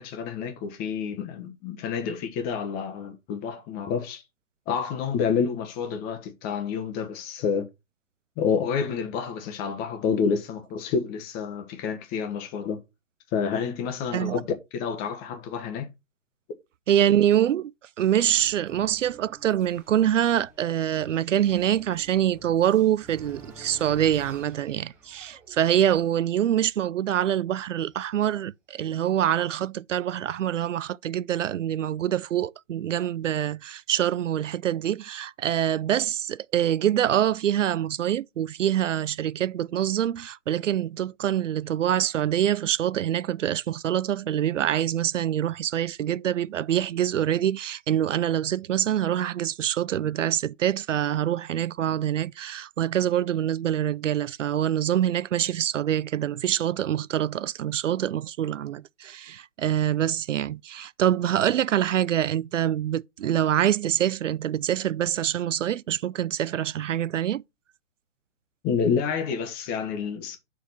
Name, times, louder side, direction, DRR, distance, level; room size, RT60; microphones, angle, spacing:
voice 1, 0.0-4.2 4.7-7.7 8.4-12.8 13.3-14.5 14.7-15.9 68.6-70.4, left 6 dB, 25° left, 1.3 m, -28 dB
voice 2, 16.9-17.7 18.0-67.4, right 10 dB, 70° right, 0.5 m, -25 dB
sound 1, 18.3-28.1, right 2 dB, 5° right, 0.4 m, -50 dB
5.8 x 4.9 x 5.7 m
figure-of-eight pair, 130°, 39 cm